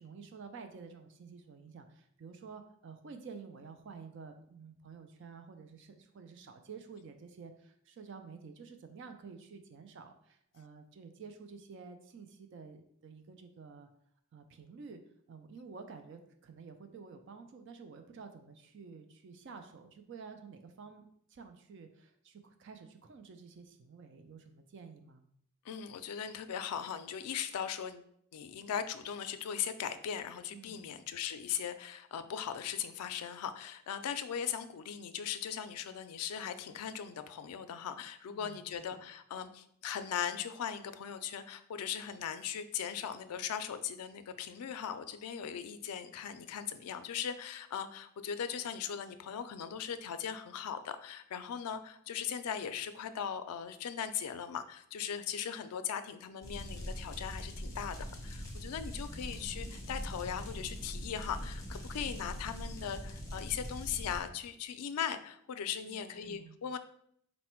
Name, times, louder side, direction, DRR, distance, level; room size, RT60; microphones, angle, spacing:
voice 1, 0.0-13.9 14.3-15.0 15.3-25.2 30.5-30.9 38.3-38.6 38.9-39.0 65.9-66.6, right 5 dB, 55° right, 7 dB, 0.3 m, -51 dB
voice 2, 25.6-66.8, left 8 dB, 90° left, 10 dB, 0.4 m, -39 dB
sound 1, 56.4-64.2, equal, 15° left, 0.8 m, -42 dB
4.1 x 2.1 x 4.3 m, 0.69 s
head